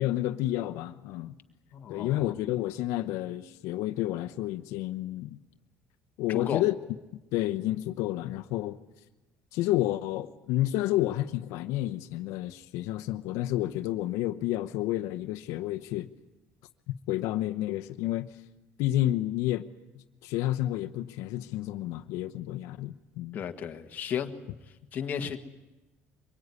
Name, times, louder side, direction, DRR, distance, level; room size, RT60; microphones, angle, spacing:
voice 1, 0.0-1.4 1.9-5.4 6.2-6.8 7.3-8.8 9.5-16.1 16.9-18.3 18.8-19.7 20.2-23.4, left 15 dB, 85° left, 0.9 m, -30 dB
voice 2, 1.7-2.3 6.3-6.6 23.3-24.3 24.9-25.4, left 8 dB, 35° left, 1.6 m, -33 dB
24.5 x 22.5 x 9.7 m
cardioid pair, 170°, 5 cm